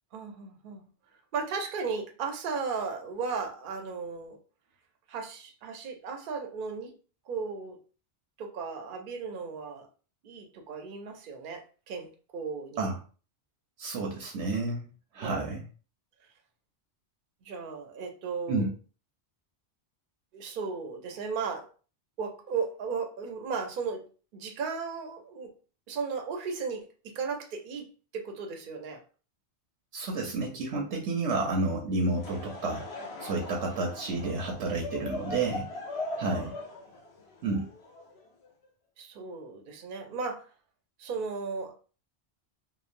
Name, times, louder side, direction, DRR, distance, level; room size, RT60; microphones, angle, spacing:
voice 1, 0.1-0.8 1.3-4.4 5.1-6.9 7.3-7.8 8.4-9.9 10.2-12.9 15.2-15.5 17.4-18.7 20.3-21.7 22.2-24.1 24.3-25.5 25.9-29.0 36.3-36.5 39.0-40.5 41.0-41.7, right 5 dB, 60° right, 4 dB, 0.6 m, -35 dB
voice 2, 13.8-14.8 15.1-15.6 18.5-18.7 29.9-32.8 33.2-35.7 36.2-36.5 37.4-37.7, right 3 dB, 90° right, 0 dB, 0.9 m, -30 dB
Laughter / Crowd, 32.0-38.5, left 2 dB, 70° left, 0.9 m, -40 dB
2.9 x 2.0 x 2.4 m, 0.37 s
omnidirectional pair, 1.1 m